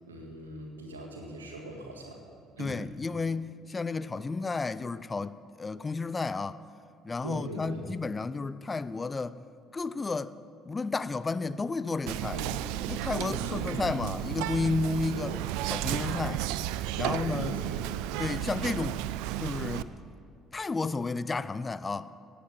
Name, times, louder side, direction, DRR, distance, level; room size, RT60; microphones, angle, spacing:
voice 1, 0.1-2.2 2.6-2.8 7.2-7.9 12.3-12.6 13.1-14.0 15.1-15.3 17.0-17.9, right 1 dB, 80° right, 1.9 m, -40 dB
voice 2, 2.6-6.6 7.0-9.4 9.7-10.3 10.7-12.4 12.9-15.3 15.7-16.5 16.9-17.6 18.2-19.0 19.4-19.9 20.5-22.1, left 4 dB, 25° left, 0.4 m, -32 dB
Whispering, 12.1-19.8, right 14 dB, 65° right, 0.4 m, -33 dB
17.5 x 8.2 x 7.5 m
figure-of-eight pair, 55°, 0 cm